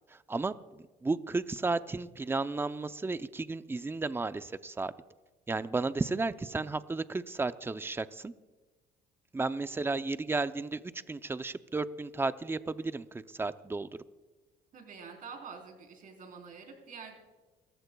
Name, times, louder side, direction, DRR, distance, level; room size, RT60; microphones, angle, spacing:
voice 1, 0.1-4.9 5.5-8.3 9.3-10.8 11.1-13.9, right 3 dB, 15° right, 13 dB, 0.5 m, -33 dB
voice 2, 14.7-17.2, right 5 dB, 55° right, 1 dB, 3.9 m, -47 dB
29.0 x 15.0 x 2.3 m, 1.3 s
cardioid pair, 110°, 17 cm